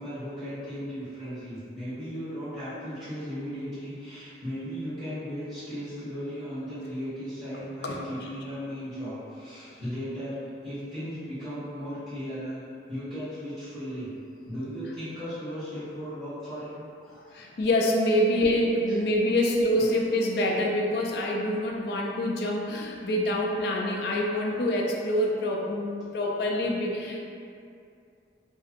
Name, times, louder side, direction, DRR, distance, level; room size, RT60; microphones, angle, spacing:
voice 1, 0.0-10.4 10.6-12.6 12.9-14.1 14.4-17.4 18.9-19.0 19.8-19.9, equal, 25° right, -17 dB, 1.1 m, -36 dB
voice 2, 17.3-27.2, left 1 dB, 60° left, -1 dB, 0.3 m, -26 dB
2.6 x 2.4 x 2.4 m, 2.4 s
head